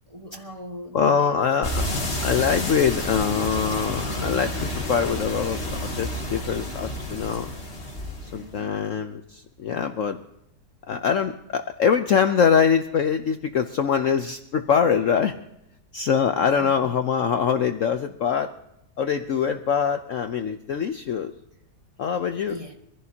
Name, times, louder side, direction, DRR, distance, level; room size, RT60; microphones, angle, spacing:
voice 1, 0.1-1.5 8.2-8.8 16.6-16.9 22.5-22.7, equal, 20° right, 1.5 m, -40 dB
voice 2, 0.9-1.8 2.2-7.5 8.2-10.2 10.9-15.3 15.9-18.5 19.0-21.3 22.0-22.6, left 7 dB, 60° left, 0.9 m, -23 dB
sound 1, 1.6-8.5, left 1 dB, 40° left, 2.3 m, -30 dB
24.5 x 15.0 x 2.8 m
omnidirectional pair, 1.8 m